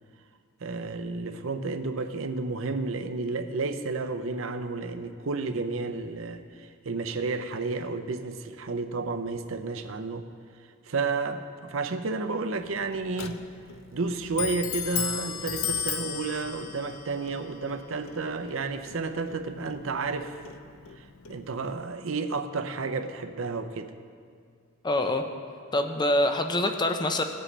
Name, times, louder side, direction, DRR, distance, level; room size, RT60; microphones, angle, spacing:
voice 1, 0.6-10.3 10.9-13.4 13.9-20.4 21.0-23.9, right 3 dB, 65° right, 8 dB, 0.6 m, -31 dB
Clock, 12.6-21.9, left 8 dB, 70° left, 0.6 m, -36 dB
voice 2, 24.8-25.2 25.7-27.2, left 1 dB, 20° left, 6 dB, 0.6 m, -25 dB
18.5 x 7.5 x 3.3 m, 2.2 s
head